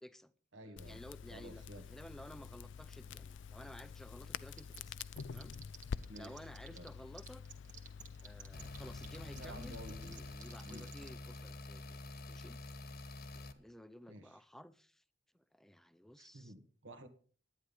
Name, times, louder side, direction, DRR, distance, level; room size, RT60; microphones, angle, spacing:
voice 1, 0.0-0.3 0.6-5.0 5.3-5.6 6.1-7.4 8.2-12.0 12.3-12.6 13.3-15.0 15.3-16.5, equal, ahead, 0.5 m, -54 dB
voice 2, 0.5-1.0 1.3-1.8 6.1-6.4 6.7-6.9 9.3-10.2 10.6-10.9 14.1-14.3 16.2-17.1, right 1 dB, 75° right, 1.8 m, -52 dB
Crackle, 0.8-10.3, left 6 dB, 70° left, 0.4 m, -48 dB
sound 1, 4.6-6.9 7.1-11.1, right 7 dB, 40° right, 1.6 m, -52 dB
sound 2, 8.5-13.5, left 2 dB, 55° left, 1.2 m, -48 dB
11.0 x 9.8 x 5.4 m
head